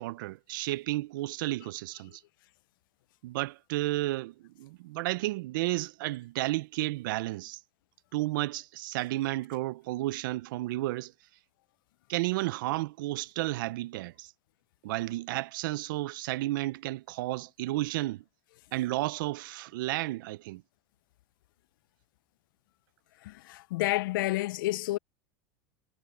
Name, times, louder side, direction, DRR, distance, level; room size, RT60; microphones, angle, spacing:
voice 1, 0.0-2.2 3.2-7.6 8.1-11.1 12.1-14.3 14.8-18.2 18.7-20.6, right 18 dB, 75° right, 0.7 m, -32 dB
voice 2, 23.2-25.0, left 17 dB, 80° left, 0.4 m, -30 dB
supercardioid pair, 115°, 11 cm